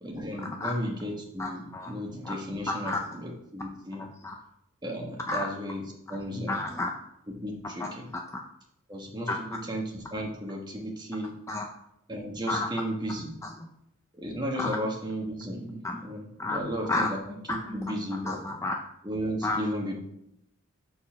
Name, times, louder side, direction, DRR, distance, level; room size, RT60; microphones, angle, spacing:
voice 1, 0.0-4.0 4.8-6.6 7.3-8.1 8.9-11.3 12.1-13.3 14.2-18.4 19.0-19.9, equal, 20° right, 0 dB, 1.3 m, -34 dB
voice 2, 1.4-1.9 2.9-3.0 4.2-4.3 5.3-5.5 6.5-6.9 7.8-8.4 9.3-9.4 11.5-11.7 12.5-12.7 14.6-14.7 15.8-16.0 16.4-16.6 16.9-17.1 17.5-17.6 18.3-18.7 19.4-19.6, left 2 dB, 15° left, 3 dB, 0.4 m, -30 dB
6.7 x 4.2 x 5.6 m, 0.76 s
head